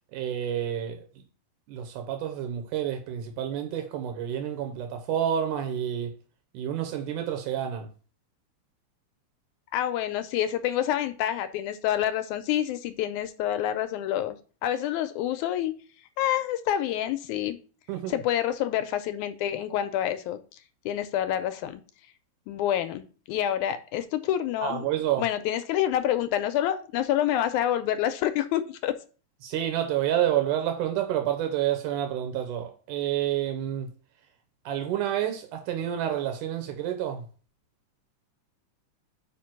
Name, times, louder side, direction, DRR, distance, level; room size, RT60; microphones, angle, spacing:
voice 1, 0.1-1.1 1.7-6.1 6.5-7.9 17.9-18.2 24.6-25.3 29.4-33.9 34.7-37.3, right 10 dB, 85° right, 2.4 m, -29 dB
voice 2, 9.7-14.4 14.6-15.7 16.2-17.6 18.1-20.4 20.9-21.8 22.5-24.9 25.2-28.9, left 11 dB, 80° left, 2.0 m, -27 dB
5.1 x 5.0 x 5.9 m
omnidirectional pair, 3.5 m